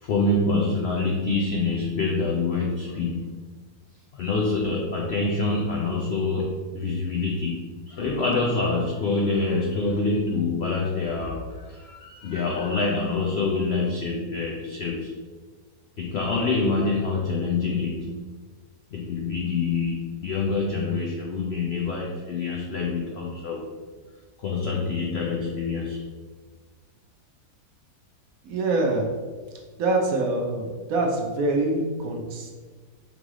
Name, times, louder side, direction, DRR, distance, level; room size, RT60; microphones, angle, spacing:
voice 1, 0.0-3.3 4.1-15.1 16.0-18.2 18.9-23.6 24.4-26.0, left 3 dB, 80° left, -1 dB, 0.5 m, -26 dB
voice 2, 28.4-29.1 29.8-32.5, right 2 dB, 65° right, 2 dB, 1.0 m, -25 dB
3.8 x 3.2 x 3.6 m, 1.4 s
omnidirectional pair, 1.7 m